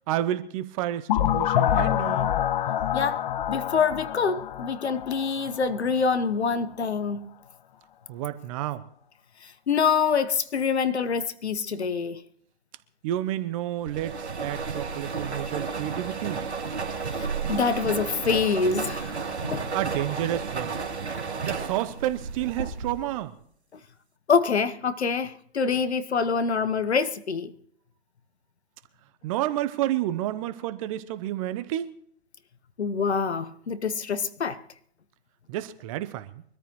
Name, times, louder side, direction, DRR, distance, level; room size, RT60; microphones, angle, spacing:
voice 1, 0.1-2.3 8.1-8.8 13.0-16.5 19.7-20.8 21.4-23.3 29.2-31.9 35.5-36.4, right 13 dB, 30° right, 0.8 m, -30 dB
sound 1, 1.1-5.8, left 11 dB, 45° left, 0.6 m, -26 dB
voice 2, 2.9-7.3 9.4-12.2 17.1-19.1 19.4-19.7 23.7-23.8 24.3-27.5 32.8-34.6, left 5 dB, 75° left, 1.1 m, -26 dB
sound 2, 13.9-23.2, right 5 dB, 80° right, 2.7 m, -32 dB
23.5 x 13.5 x 3.1 m
figure-of-eight pair, 125°, 33 cm